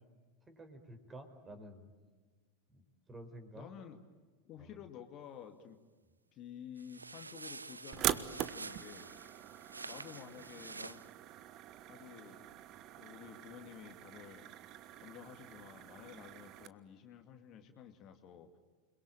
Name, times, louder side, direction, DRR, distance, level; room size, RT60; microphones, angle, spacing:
voice 1, 0.5-1.9 2.7-3.7 4.6-4.7, right 1 dB, 15° right, 8 dB, 4.5 m, -51 dB
voice 2, 3.5-4.0 4.4-5.8 6.3-9.1 9.8-11.0 11.9-12.4 13.0-14.6 15.0-18.5, left 9 dB, 40° left, 6 dB, 2.2 m, -52 dB
sound 1, 6.8-11.1, right 3 dB, 85° right, 0.8 m, -49 dB
sound 2, 7.9-16.7, right 12 dB, 40° right, 1.3 m, -43 dB
29.0 x 22.0 x 9.1 m, 1.4 s
figure-of-eight pair, 90°, 0 cm